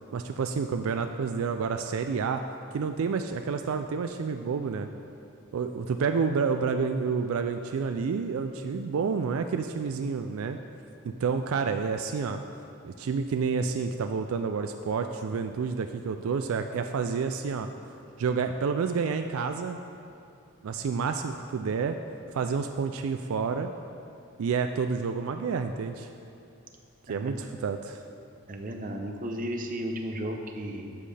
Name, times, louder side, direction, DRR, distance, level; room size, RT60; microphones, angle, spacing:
voice 1, 0.1-2.4 2.7-4.9 5.5-10.6 11.0-12.4 12.8-17.7 18.2-19.8 20.6-22.0 22.3-23.7 24.4-26.1 27.1-28.0, right 5 dB, 80° right, 7 dB, 0.4 m, -29 dB
voice 2, 27.1-27.4 28.5-31.0, equal, 40° right, 3 dB, 0.8 m, -34 dB
11.5 x 7.7 x 3.3 m, 2.6 s
head